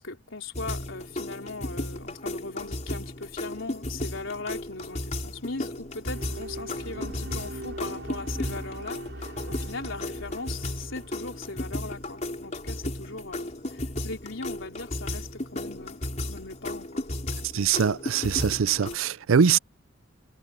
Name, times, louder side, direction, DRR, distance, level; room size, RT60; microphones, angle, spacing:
voice 1, 0.0-16.0 16.3-17.0, left 3 dB, 75° left, 3.7 m, -39 dB
sound 1, 0.5-19.0, left 1 dB, 35° left, 4.2 m, -35 dB
sound 2, 6.1-12.4, right 1 dB, 60° right, 6.6 m, -41 dB
voice 2, 17.5-19.6, right 7 dB, 85° right, 0.5 m, -23 dB
head